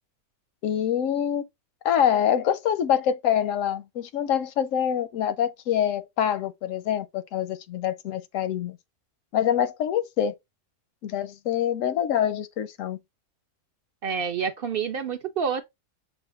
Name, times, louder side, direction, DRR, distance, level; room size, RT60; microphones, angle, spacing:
voice 1, 0.6-1.4 1.8-8.8 9.3-10.4 11.0-13.0, left 9 dB, 85° left, 1.0 m, -25 dB
voice 2, 14.0-15.6, right 6 dB, 55° right, 0.7 m, -28 dB
6.2 x 2.4 x 3.5 m
omnidirectional pair, 1.3 m